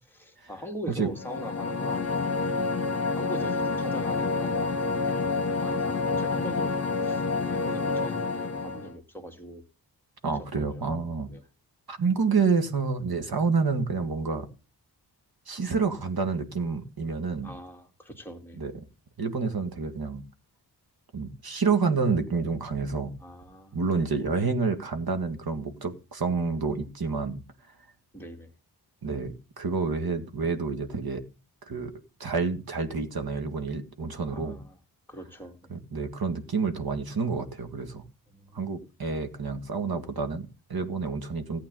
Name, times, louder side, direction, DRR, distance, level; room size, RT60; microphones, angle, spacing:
voice 1, 0.1-2.2 3.1-5.3 5.6-6.7 7.0-9.6 10.2-10.8 11.3-11.4 17.4-18.6 23.2-23.8 24.4-24.5 28.1-28.5 34.3-34.8 35.1-35.7 38.3-38.6, equal, 5° left, 2.2 m, -41 dB
sound 1, 1.1-8.9, left 4 dB, 40° left, 1.6 m, -28 dB
voice 2, 10.2-11.3 11.9-14.5 15.5-17.5 18.6-18.7 19.2-20.2 21.1-23.2 23.7-27.4 29.0-31.2 31.7-31.9 32.2-34.6 35.7-38.0 38.5-41.6, right 4 dB, 60° right, 1.9 m, -28 dB
15.0 x 8.5 x 3.9 m
wide cardioid pair, 70°, 41 cm